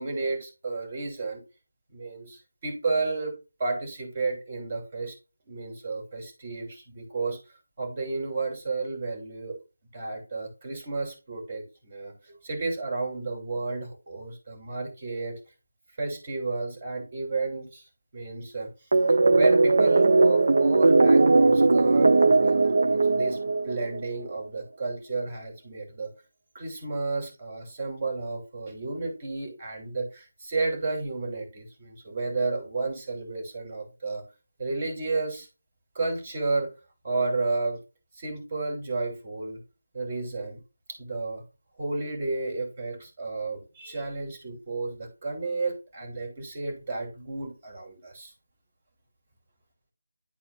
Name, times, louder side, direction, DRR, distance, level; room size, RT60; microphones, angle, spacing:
voice 1, 0.0-1.4 1.9-5.2 5.5-7.4 7.8-9.6 9.9-15.4 16.0-17.8 18.1-18.7 19.3-26.1 26.5-34.2 34.6-35.5 35.9-36.7 37.0-37.8 38.2-39.6 39.9-40.6 40.9-41.4 41.8-48.3, right 3 dB, 30° right, 2 dB, 3.0 m, -32 dB
sound 1, 18.9-24.1, right 3 dB, 60° right, 0.5 m, -19 dB
11.0 x 4.3 x 2.4 m, 0.29 s
figure-of-eight pair, 165°, 0 cm